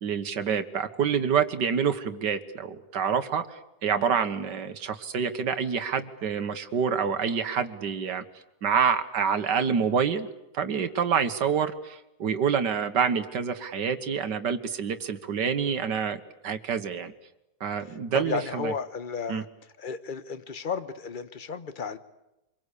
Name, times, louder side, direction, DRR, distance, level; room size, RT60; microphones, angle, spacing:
voice 1, 0.0-8.2 8.6-10.3 10.5-17.1 17.6-18.7 19.3-19.4, right 7 dB, 90° right, 10 dB, 2.0 m, -27 dB
voice 2, 18.1-19.5 19.8-22.0, left 5 dB, 35° left, 11 dB, 1.2 m, -33 dB
26.5 x 22.5 x 8.4 m, 0.91 s
omnidirectional pair, 1.8 m